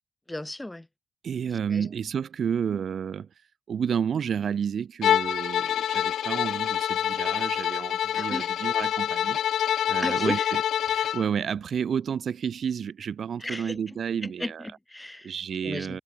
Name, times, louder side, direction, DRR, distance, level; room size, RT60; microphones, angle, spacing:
voice 1, 0.3-0.9 1.7-1.9 8.1-8.5 10.0-10.5 13.4-13.8 14.2-15.3 15.6-16.0, left 1 dB, 15° left, 6.7 m, -34 dB
voice 2, 1.2-3.3 3.7-9.4 9.9-10.6 10.9-14.7 15.2-16.0, right 7 dB, 60° right, 1.3 m, -30 dB
Bowed string instrument, 5.0-11.3, left 10 dB, 65° left, 1.3 m, -26 dB
hypercardioid pair, 40°, 0 cm